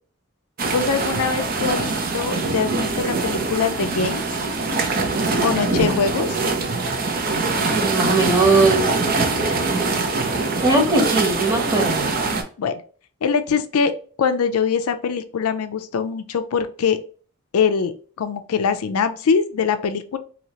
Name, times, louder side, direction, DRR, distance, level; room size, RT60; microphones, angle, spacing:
sound 1, 0.6-12.4, right 3 dB, 40° right, 0.6 m, -23 dB
voice 1, 0.7-4.2 5.4-6.4 12.6-12.8 13.2-13.9 14.2-17.0 17.5-20.2, left 6 dB, 75° left, 10 dB, 0.4 m, -23 dB
voice 2, 7.7-8.9 10.6-12.1, right 2 dB, 15° right, -1 dB, 1.0 m, -19 dB
2.8 x 2.8 x 3.0 m, 0.41 s
head